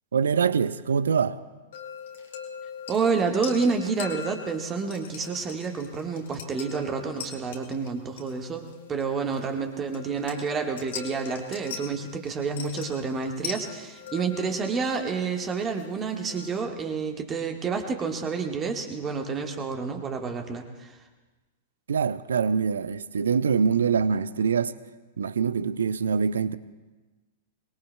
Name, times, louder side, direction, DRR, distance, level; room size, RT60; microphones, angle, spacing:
voice 1, 0.1-1.4 21.9-24.7 25.2-26.6, right 6 dB, 65° right, 16 dB, 0.6 m, -24 dB
sound 1, 1.7-16.6, left 6 dB, 55° left, 2.0 m, -41 dB
voice 2, 2.9-21.0, right 5 dB, 20° right, 3 dB, 1.5 m, -29 dB
23.5 x 21.0 x 2.2 m, 1.2 s
figure-of-eight pair, 100°, 0 cm